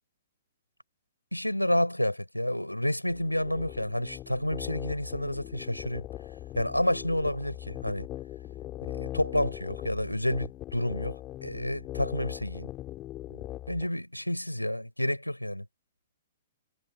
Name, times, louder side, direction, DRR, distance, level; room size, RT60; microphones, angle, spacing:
voice 1, 1.3-6.1 6.5-8.1 8.9-11.2 11.4-12.7 13.3-15.6, left 1 dB, 90° left, 6.8 m, -30 dB
sound 1, 3.1-13.9, left 15 dB, 25° left, 6.3 m, -40 dB
figure-of-eight pair, 115°, 0 cm